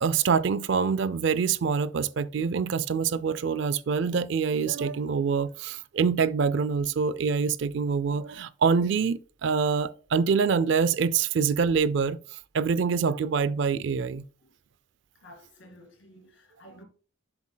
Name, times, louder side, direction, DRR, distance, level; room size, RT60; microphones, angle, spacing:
voice 1, 0.0-12.2 12.5-14.3, right 5 dB, 55° right, 0.4 m, -25 dB
voice 2, 15.1-16.8, equal, 65° left, 2.3 m, -52 dB
7.8 x 7.2 x 2.2 m
head